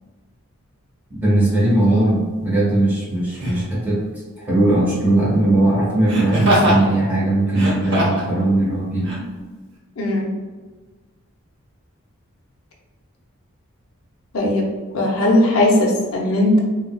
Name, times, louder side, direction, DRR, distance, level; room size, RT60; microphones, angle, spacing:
voice 1, 1.1-4.0 4.4-9.1, right 1 dB, 10° right, -8 dB, 1.2 m, -19 dB
Laughter, 1.9-2.0 3.3-3.7 6.1-6.8 7.5-8.3 9.0-9.2, equal, 55° right, 0.7 m, -21 dB
voice 2, 10.0-10.3 14.3-14.7 14.9-16.6, left 1 dB, 80° left, -1 dB, 0.6 m, -17 dB
3.7 x 2.3 x 2.2 m, 1.3 s
head